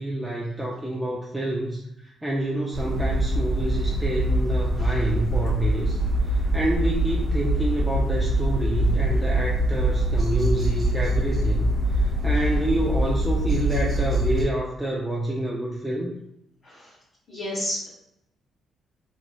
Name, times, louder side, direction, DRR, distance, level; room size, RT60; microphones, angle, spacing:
voice 1, 0.0-6.0 6.3-11.7 12.0-16.1, right 1 dB, 10° right, -4 dB, 0.4 m, -28 dB
sound 1, 2.7-14.4, right 1 dB, 40° right, 0.7 m, -23 dB
voice 2, 16.6-17.0 17.3-17.9, equal, 45° left, -8 dB, 1.0 m, -33 dB
3.0 x 2.8 x 2.2 m, 0.83 s
cardioid pair, 90°, 0 cm